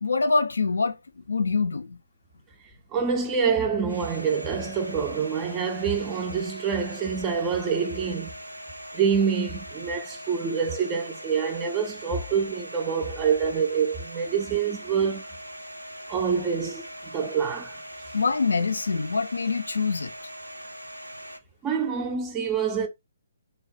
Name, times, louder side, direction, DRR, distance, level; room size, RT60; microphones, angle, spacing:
voice 1, 0.0-2.0 18.1-20.1, left 4 dB, 70° left, 0.4 m, -25 dB
voice 2, 2.9-8.3 8.9-15.2 16.1-17.8 21.6-22.9, right 6 dB, 20° right, 0.3 m, -26 dB
Domestic sounds home sounds, 3.9-21.4, equal, 85° right, 0.4 m, -41 dB
3.2 x 2.0 x 2.4 m
figure-of-eight pair, 135°, 0 cm